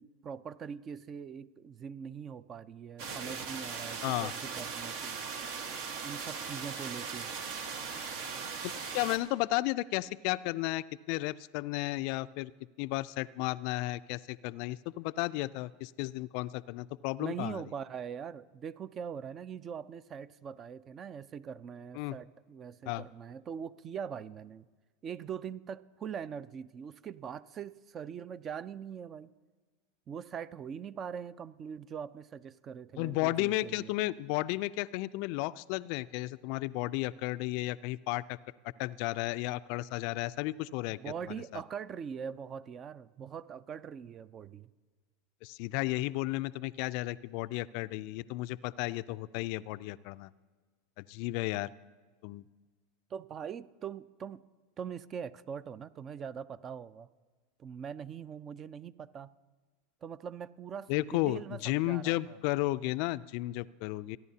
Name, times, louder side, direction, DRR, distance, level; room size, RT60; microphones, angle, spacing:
voice 1, 0.0-5.3 6.0-7.3 17.2-24.7 25.0-29.3 30.1-33.9 40.8-44.7 53.1-54.4 54.8-57.1 57.6-59.3 60.0-62.4, right 7 dB, 35° right, 17 dB, 0.5 m, -42 dB
sound 1, 3.0-9.2, right 5 dB, 65° right, 1.5 m, -39 dB
voice 2, 8.6-12.5 12.8-17.6 21.9-22.2 22.9-23.0 33.0-38.4 38.8-41.0 41.5-41.6 45.4-50.3 51.0-51.7 52.2-52.4 60.9-64.2, left 19 dB, 60° left, 16 dB, 0.3 m, -33 dB
28.5 x 10.5 x 2.8 m, 1.4 s
hypercardioid pair, 95°, 0 cm